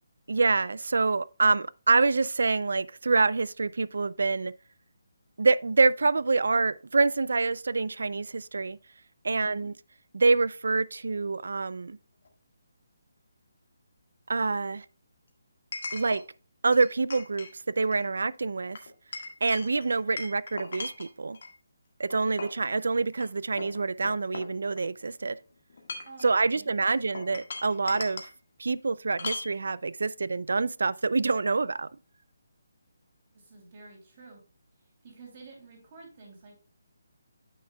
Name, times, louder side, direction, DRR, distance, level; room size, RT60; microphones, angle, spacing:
voice 1, 0.3-4.5 5.4-8.8 9.2-9.7 10.1-12.0 14.3-14.9 15.9-16.2 16.6-18.8 19.4-21.4 22.0-25.4 26.2-28.3 28.6-31.9, right 3 dB, 75° right, 0.4 m, -26 dB
voice 2, 9.3-9.7 26.0-27.2 33.3-34.4 35.0-36.6, right 3 dB, 30° right, 2.8 m, -50 dB
Chink clink, 12.3-12.4 15.7-16.2 16.7-17.5 17.8-18.1 18.8-21.5 22.1-22.6 23.1-23.3 23.6-25.0 25.7-26.2 27.1-28.3 29.2-29.5, left 3 dB, 55° left, 1.6 m, -39 dB
9.4 x 6.2 x 2.2 m
hypercardioid pair, 175°, 0 cm